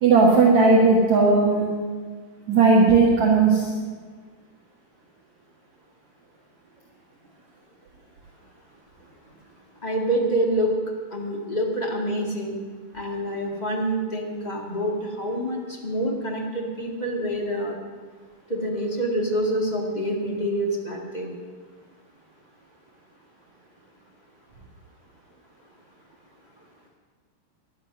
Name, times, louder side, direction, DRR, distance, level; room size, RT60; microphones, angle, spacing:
voice 1, 0.0-1.6 2.5-3.7, right 4 dB, 55° right, -3 dB, 2.7 m, -16 dB
voice 2, 9.8-10.7 11.1-12.6 12.9-17.8 18.5-21.3, right 1 dB, 50° left, -2 dB, 0.5 m, -26 dB
18.5 x 12.0 x 6.1 m, 1.5 s
omnidirectional pair, 4.5 m